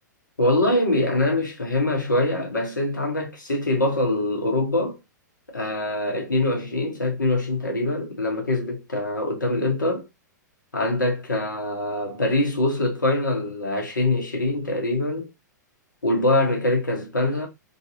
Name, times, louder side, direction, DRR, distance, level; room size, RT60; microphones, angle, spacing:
voice 1, 0.4-5.0 5.5-10.1 10.7-15.3 16.0-17.5, left 2 dB, 80° left, 1.5 m, -24 dB
3.9 x 2.7 x 2.8 m
figure-of-eight pair, 105°, 10 cm